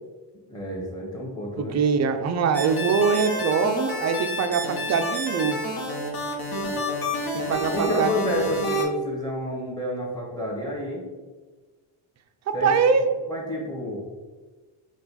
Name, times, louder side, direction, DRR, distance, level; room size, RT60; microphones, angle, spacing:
voice 1, 0.5-1.8 7.7-11.0 12.5-12.7 13.3-14.0, left 1 dB, 10° left, -2 dB, 1.4 m, -29 dB
voice 2, 1.6-5.7 7.3-8.4 12.5-13.0, right 5 dB, 35° right, 8 dB, 0.4 m, -23 dB
sound 1, 2.5-8.9, left 1 dB, 45° left, 1.1 m, -29 dB
4.4 x 2.4 x 4.1 m, 1.3 s
cardioid pair, 90°, 49 cm